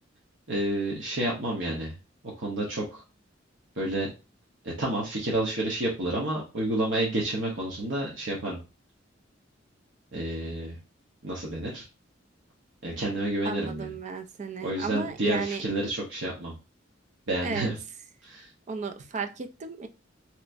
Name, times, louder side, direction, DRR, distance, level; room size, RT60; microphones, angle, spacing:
voice 1, 0.5-1.9 2.4-3.0 3.8-4.1 4.8-8.6 10.1-10.8 11.2-11.8 12.8-13.9 14.6-16.5 17.3-17.7 18.2-18.4, right 1 dB, 70° right, -4 dB, 1.0 m, -29 dB
voice 2, 13.4-15.6 17.4-17.7 18.7-19.9, right 5 dB, 40° right, 7 dB, 0.4 m, -34 dB
3.4 x 3.0 x 2.5 m, 0.29 s
head